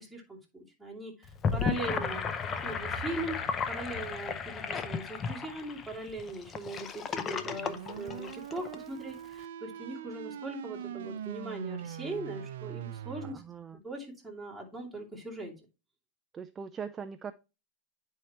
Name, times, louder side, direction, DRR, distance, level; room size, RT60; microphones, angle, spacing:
voice 1, 0.0-2.2 2.6-13.4 13.8-15.5, right 2 dB, ahead, -4 dB, 2.6 m, -40 dB
Gurgling / Sink (filling or washing), 1.2-8.8, left 6 dB, 25° left, 0.6 m, -34 dB
sound 1, 7.4-13.3, right 10 dB, 80° right, 0.6 m, -42 dB
voice 2, 13.2-13.8 16.3-17.3, right 6 dB, 20° right, 10 dB, 0.4 m, -41 dB
9.8 x 4.7 x 2.9 m, 0.29 s
supercardioid pair, 130°, 0 cm